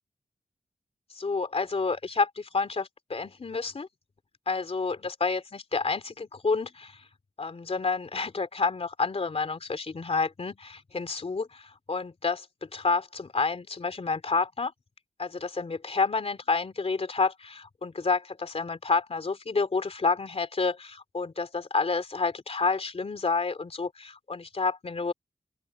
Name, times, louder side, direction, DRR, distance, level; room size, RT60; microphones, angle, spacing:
voice 1, 1.1-3.9 4.5-7.0 7.4-14.7 15.2-25.1, left 4 dB, 40° left, 3.3 m, -29 dB
open air
wide cardioid pair, 140°, 15 cm